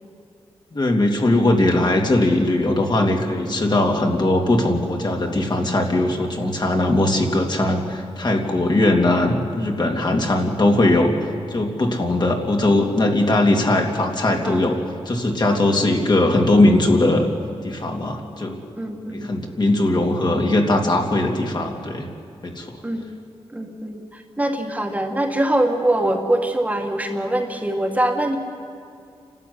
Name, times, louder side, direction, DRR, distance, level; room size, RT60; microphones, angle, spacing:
voice 1, 0.7-11.1 11.5-14.8 15.0-17.3 17.6-18.6 19.1-22.1 22.4-22.8, left 2 dB, 45° left, 1 dB, 2.9 m, -19 dB
voice 2, 18.8-19.3 22.8-23.0 23.5-28.4, right 1 dB, 15° right, 3 dB, 1.9 m, -23 dB
29.5 x 12.5 x 9.7 m, 2.3 s
wide cardioid pair, 95°, 10 cm